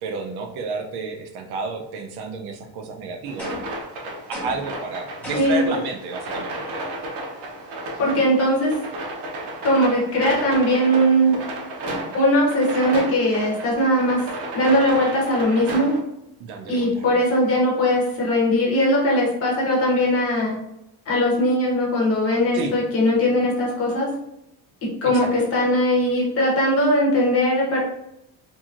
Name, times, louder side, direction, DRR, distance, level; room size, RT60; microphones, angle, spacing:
voice 1, 0.0-3.5 4.3-6.6 16.4-17.2 22.5-22.8 25.0-25.3, right 4 dB, 70° right, 4 dB, 0.5 m, -31 dB
sound 1, 3.3-16.0, right 1 dB, 90° right, 0.8 m, -33 dB
sound 2, 3.4-3.8 4.3-4.7 5.2-5.7, left 1 dB, 5° left, 0.6 m, -34 dB
voice 2, 8.0-8.8 9.6-11.4 12.1-14.2 14.5-15.9 16.7-20.6 21.1-24.1 24.8-27.8, equal, 35° left, -3 dB, 0.9 m, -20 dB
2.9 x 2.6 x 2.4 m, 0.85 s
cardioid pair, 175°, 40 cm